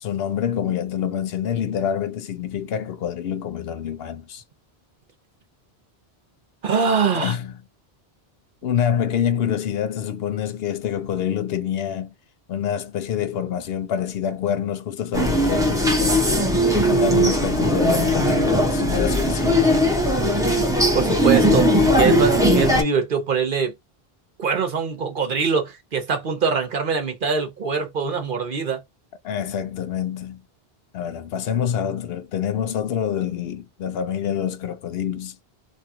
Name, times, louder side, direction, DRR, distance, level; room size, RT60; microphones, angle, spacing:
voice 1, 0.0-4.4 7.1-7.5 8.6-12.1 12.5-16.4 16.9-19.6 29.2-30.4 30.9-35.4, left 9 dB, 75° left, 0.8 m, -26 dB
voice 2, 6.6-7.3 20.9-21.7 21.9-23.7 24.4-28.8, right 5 dB, 55° right, 1.0 m, -23 dB
sound 1, 15.1-22.8, equal, 5° right, 0.8 m, -19 dB
3.0 x 2.4 x 2.7 m
omnidirectional pair, 1.1 m